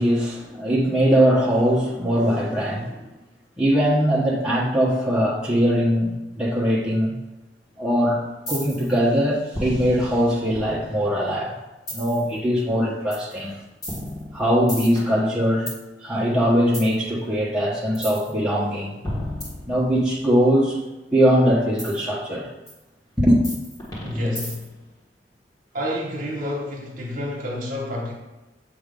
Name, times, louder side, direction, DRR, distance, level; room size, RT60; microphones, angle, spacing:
voice 1, 0.0-3.0 3.6-7.2 7.8-8.2 8.5-11.6 11.9-13.6 14.3-15.7 16.0-18.9 19.6-20.8 21.1-22.5 23.2-23.4, equal, 5° right, -7 dB, 1.0 m, -21 dB
sound 1, 8.5-8.9 9.5-11.1 11.9-12.3 13.1-13.3 13.8-15.8 16.7-16.9 17.9-18.3 19.0-20.2 21.8-22.0 22.7-22.8 23.4-24.8, left 1 dB, 20° left, 1.3 m, -33 dB
voice 2, 24.0-24.6 25.7-28.1, left 1 dB, 45° right, -1 dB, 1.2 m, -29 dB
7.3 x 2.6 x 5.2 m, 1.1 s
head